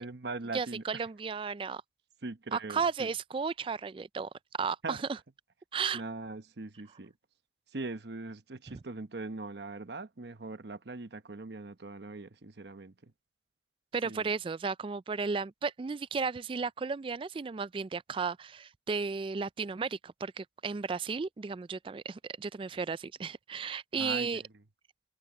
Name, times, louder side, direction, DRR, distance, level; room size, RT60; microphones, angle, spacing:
voice 1, 0.0-0.8 2.2-3.1 4.8-5.0 5.9-7.1 7.7-13.1 14.0-14.3 24.0-24.5, right 3 dB, 70° right, 1.0 m, -41 dB
voice 2, 0.5-1.8 2.5-4.3 4.6-5.2 5.7-6.0 13.9-24.4, right 5 dB, 30° right, 0.3 m, -34 dB
head